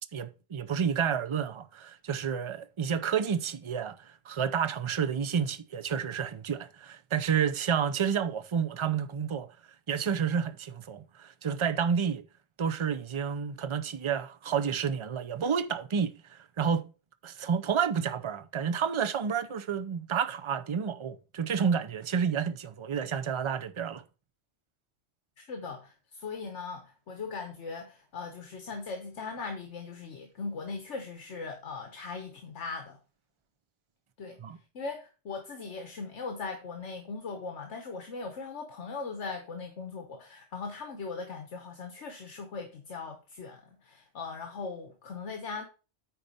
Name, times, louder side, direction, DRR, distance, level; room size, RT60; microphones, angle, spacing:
voice 1, 0.1-9.5 9.9-12.2 12.6-16.8 17.2-24.0 34.4-34.6, right 7 dB, 35° right, 0.5 m, -30 dB
voice 2, 25.4-33.0 34.2-34.4 34.7-45.7, left 4 dB, 75° left, 1.4 m, -39 dB
9.5 x 4.1 x 5.3 m
omnidirectional pair, 1.2 m